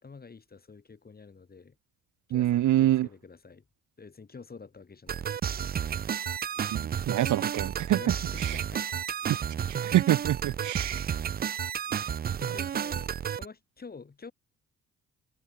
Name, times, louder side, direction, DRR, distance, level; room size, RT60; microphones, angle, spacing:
voice 1, 0.0-1.8 2.3-3.6 4.0-6.1 7.9-9.0 12.4-14.3, left 4 dB, 30° left, 4.5 m, -48 dB
voice 2, 2.3-3.1 6.7-8.6 9.7-11.1, right 13 dB, 75° right, 1.6 m, -26 dB
sound 1, 5.1-13.5, right 8 dB, 30° right, 0.4 m, -31 dB
cardioid pair, 90°, 30 cm